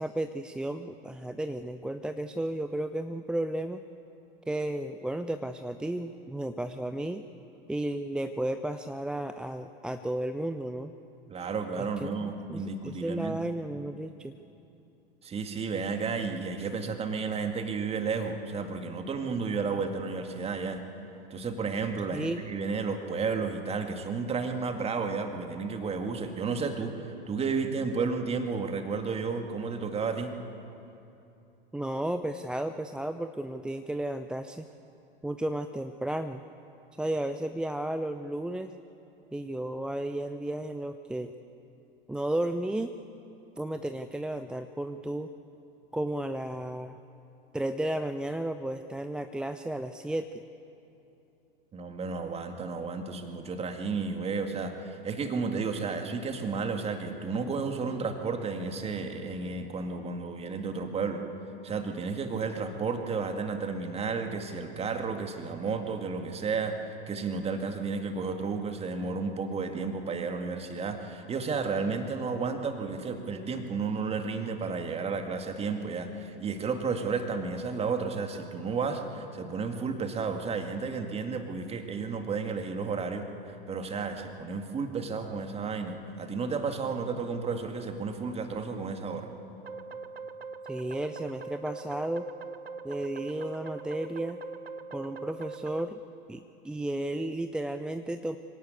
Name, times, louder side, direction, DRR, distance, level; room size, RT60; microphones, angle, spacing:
voice 1, 0.0-3.8 4.5-7.2 7.7-10.9 12.0-14.3 22.1-22.4 31.7-34.7 35.2-36.4 37.0-38.7 39.3-41.3 42.1-42.9 43.6-45.3 45.9-47.0 47.5-50.3 90.7-92.3 92.8-94.4 94.9-96.0 96.3-98.4, right 1 dB, 5° right, 9 dB, 0.5 m, -33 dB
voice 2, 11.3-13.4 15.2-20.8 21.3-30.3 51.7-61.2 61.6-89.3, right 4 dB, 20° right, 6 dB, 2.0 m, -32 dB
sound 1, 89.6-95.9, right 4 dB, 90° right, 0.8 m, -42 dB
25.0 x 17.5 x 8.4 m, 2.8 s
figure-of-eight pair, 90°, 29 cm